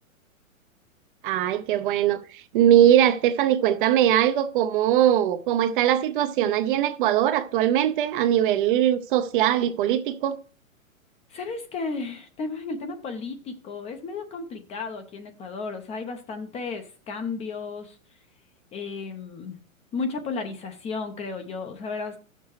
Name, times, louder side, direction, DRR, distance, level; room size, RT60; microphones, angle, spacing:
voice 1, 1.2-10.4, right 11 dB, 40° right, 0.6 m, -21 dB
voice 2, 11.3-18.0 18.7-19.6 19.9-22.2, left 4 dB, 15° left, 0.6 m, -33 dB
14.0 x 6.7 x 3.1 m
hypercardioid pair, 125°, 41 cm